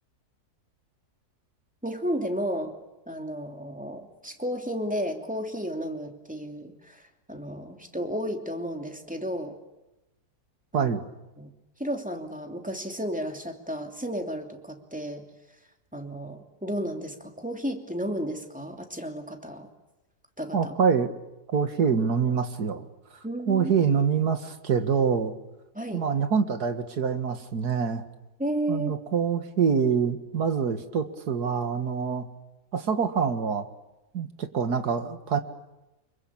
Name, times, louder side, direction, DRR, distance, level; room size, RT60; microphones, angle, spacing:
voice 1, 1.8-2.7 3.1-9.6 10.7-10.9 11.4-11.5 11.8-15.3 15.9-19.7 20.4-20.8 23.2-24.0 25.7-26.1 28.4-28.9, equal, 5° right, 4 dB, 2.8 m, -33 dB
voice 2, 20.5-21.1 21.5-22.9 23.5-25.3 25.9-28.0 28.7-32.3 32.7-33.7 34.1-35.4, right 6 dB, 75° right, 9 dB, 2.3 m, -25 dB
26.0 x 23.0 x 8.8 m, 0.98 s
omnidirectional pair, 1.7 m